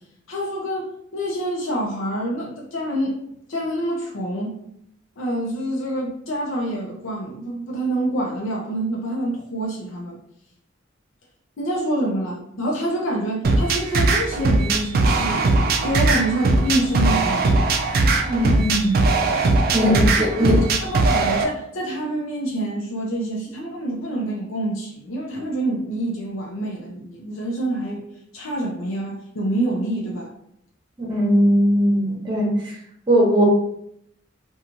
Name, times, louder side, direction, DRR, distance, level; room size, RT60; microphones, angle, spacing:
voice 1, 0.3-3.2 3.5-4.6 5.2-10.2 11.6-15.5 15.8-17.6 19.8-28.0 28.3-30.3, right 1 dB, 80° left, -2 dB, 0.6 m, -27 dB
sound 1, 13.4-21.4, right 3 dB, 50° right, 0.3 m, -19 dB
voice 2, 18.2-19.1 19.7-20.6 31.0-32.7 33.1-33.4, equal, 25° right, -3 dB, 0.9 m, -19 dB
2.9 x 2.3 x 2.5 m, 0.72 s
head